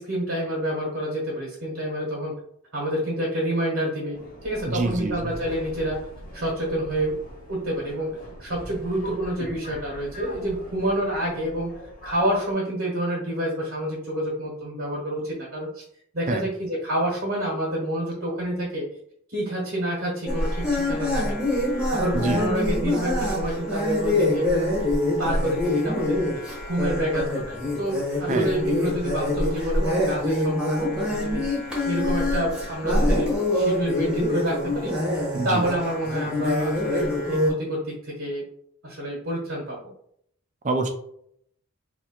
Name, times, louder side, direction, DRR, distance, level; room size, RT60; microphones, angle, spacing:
voice 1, 0.0-2.3 2.7-6.0 6.3-7.2 7.5-8.1 8.4-11.7 12.0-15.8 16.1-18.8 19.3-21.4 21.9-24.5 25.2-31.4 31.8-34.9 35.4-38.4 38.8-39.8, right 1 dB, 55° right, -3 dB, 1.1 m, -28 dB
Subway metro underground, 4.1-12.5, equal, 40° left, 1.0 m, -42 dB
voice 2, 4.7-5.3 16.3-16.4 22.1-22.4 28.3-28.5 35.3-35.6 40.6-40.9, right 3 dB, 35° right, 5 dB, 0.5 m, -26 dB
sound 1, 20.3-37.5, left 1 dB, 5° right, 1.0 m, -25 dB
3.0 x 2.4 x 4.3 m, 0.69 s
head